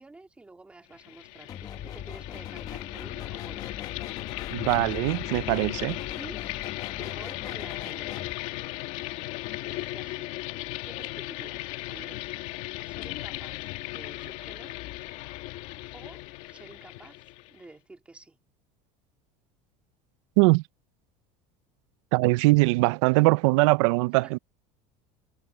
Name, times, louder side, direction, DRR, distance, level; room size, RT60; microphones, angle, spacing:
voice 1, 0.0-3.8 6.1-6.4 7.0-8.2 9.6-10.3 10.8-12.3 12.8-13.6 13.9-14.8 15.5-17.2 17.5-18.4 24.2-24.4, right 2 dB, 10° right, 2.2 m, -49 dB
sound 1, 0.9-17.6, left 18 dB, 55° left, 2.0 m, -37 dB
sound 2, 1.5-8.3, left 8 dB, 25° left, 1.0 m, -42 dB
voice 2, 4.5-6.0 20.4-20.6 22.1-24.4, right 23 dB, 80° right, 0.5 m, -22 dB
cardioid pair, 165°, 15 cm